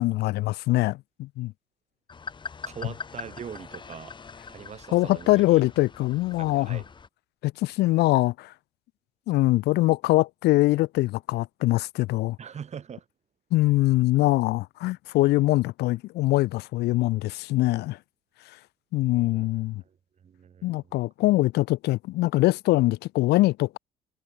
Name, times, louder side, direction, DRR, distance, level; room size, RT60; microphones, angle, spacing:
voice 1, 0.0-1.5 4.9-6.8 7.4-8.5 9.3-12.4 13.5-18.0 18.9-19.8 20.6-23.8, left 18 dB, 80° left, 0.7 m, -23 dB
sound 1, 2.1-7.1, left 5 dB, 30° left, 1.7 m, -42 dB
voice 2, 2.7-4.1 4.5-5.6 6.4-6.9 12.4-13.0 19.1-19.5 20.2-20.8, right 7 dB, 40° right, 3.6 m, -42 dB
cardioid pair, 110°, 17 cm